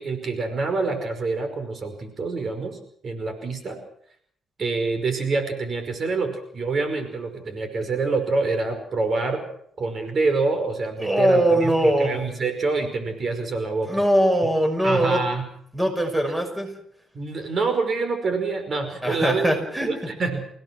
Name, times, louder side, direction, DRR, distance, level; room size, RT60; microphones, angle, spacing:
voice 1, 0.0-2.8 3.0-3.8 4.6-9.4 9.8-13.9 14.8-15.4 17.1-19.5 19.9-20.4, right 3 dB, 45° right, 7 dB, 5.4 m, -26 dB
voice 2, 11.0-12.2 13.9-15.2 15.7-16.7 19.0-19.9, right 1 dB, 10° right, 5 dB, 6.1 m, -21 dB
29.5 x 17.0 x 6.2 m, 0.66 s
cardioid pair, 90°, 0 cm